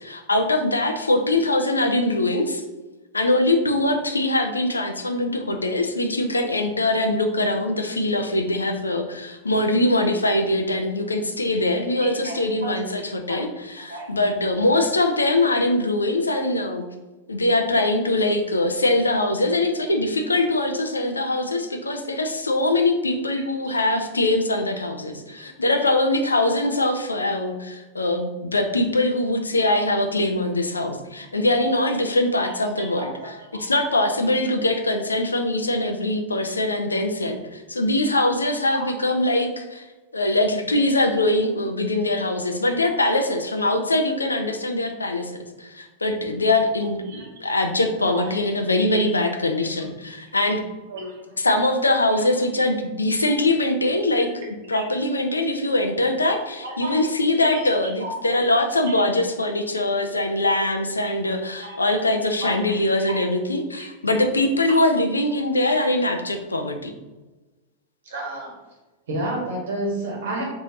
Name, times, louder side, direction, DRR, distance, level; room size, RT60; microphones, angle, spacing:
voice 1, 0.0-2.6 3.1-16.8 17.3-39.9 40.1-50.6 51.4-54.3 54.7-66.9, left 2 dB, 80° left, 5 dB, 0.3 m, -22 dB
voice 2, 12.0-12.8 13.9-14.1 32.4-32.5 32.9-33.7 38.6-38.8 42.8-42.9 47.1-47.3 48.1-48.3 48.9-49.0 50.9-51.2 52.1-52.2 54.7-54.8 56.6-57.0 57.5-57.6 58.0-58.1 58.9-59.0 61.6-62.0 62.4-62.8 63.1-63.2 64.7-64.8 68.0-68.6 69.1-70.4, right 1 dB, 60° right, -2 dB, 1.0 m, -32 dB
3.2 x 2.6 x 2.7 m, 1.1 s
figure-of-eight pair, 90°, 0 cm